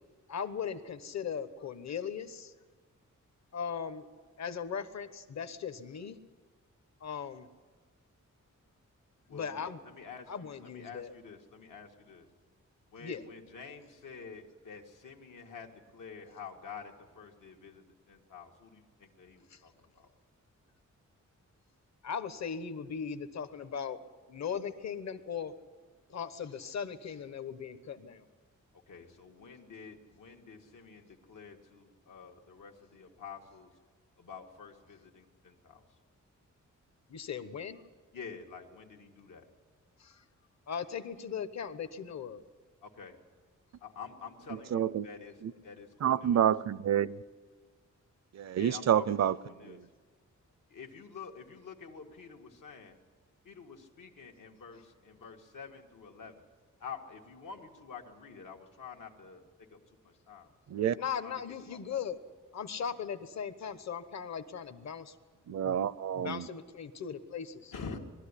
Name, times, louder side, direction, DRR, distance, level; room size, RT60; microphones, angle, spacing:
voice 1, 0.3-2.5 3.5-4.1 4.4-6.2 7.0-7.5 9.3-9.8 10.3-11.1 13.0-13.2 19.5-19.6 22.0-24.0 24.3-25.5 26.1-28.2 37.1-37.8 40.0-40.2 40.7-42.4 61.0-62.2 62.5-65.2 65.6-65.8 66.1-67.7, left 7 dB, 60° left, 1.1 m, -38 dB
voice 2, 9.3-12.3 12.9-20.1 28.9-33.7 34.2-35.8 38.1-39.5 42.8-43.2 43.8-45.3 45.6-46.4 48.6-49.8 50.7-53.0 53.4-56.5 56.8-60.5 61.0-61.4 61.7-62.0 67.7-68.0, left 5 dB, 90° left, 2.1 m, -48 dB
voice 3, 44.5-45.1 45.4-45.5 46.0-47.1 48.3-49.4 49.7-49.8 60.7-61.0 65.5-66.5, right 9 dB, 60° right, 0.5 m, -28 dB
21.0 x 13.5 x 9.9 m
wide cardioid pair, 175°, 31 cm